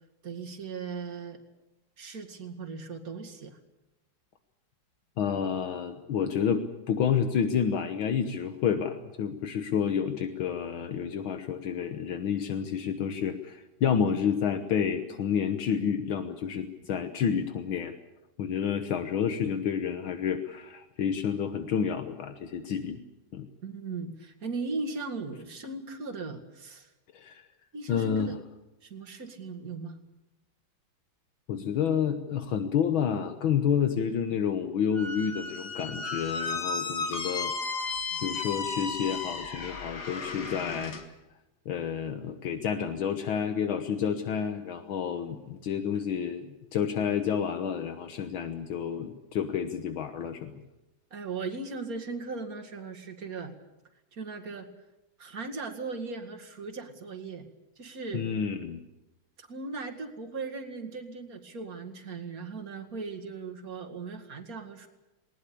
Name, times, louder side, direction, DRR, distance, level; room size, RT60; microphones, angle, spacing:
voice 1, 0.2-1.4 2.0-3.6 18.6-18.7 23.6-26.9 27.7-28.4 28.8-30.0 38.1-38.3 51.1-53.5 54.1-54.7 55.2-57.5 57.8-58.3 59.4-64.9, right 4 dB, 45° right, 6 dB, 2.5 m, -38 dB
voice 2, 5.2-18.0 18.4-23.0 23.3-23.5 27.1-27.5 27.9-28.3 31.5-37.5 37.8-37.9 38.2-40.9 41.7-50.5 58.1-58.8, left 7 dB, 75° left, 8 dB, 1.9 m, -29 dB
Squeak, 34.9-41.0, left 4 dB, 55° left, 2.3 m, -34 dB
20.0 x 19.5 x 8.5 m, 0.97 s
omnidirectional pair, 2.2 m